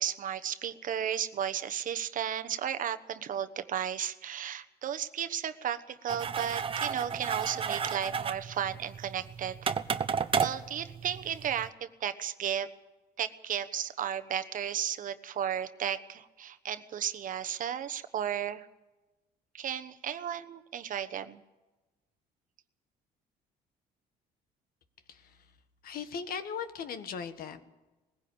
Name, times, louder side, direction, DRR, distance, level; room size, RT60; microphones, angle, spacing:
voice 1, 0.0-9.7 10.3-12.7 13.2-18.7 19.5-21.4, right 9 dB, 50° right, 10 dB, 1.1 m, -34 dB
sound 1, 6.1-11.7, right 6 dB, 30° right, 0.9 m, -33 dB
voice 2, 25.1-25.5 25.8-27.6, left 6 dB, 60° left, 10 dB, 1.7 m, -38 dB
20.0 x 16.0 x 8.7 m, 1.1 s
cardioid pair, 110°, 17 cm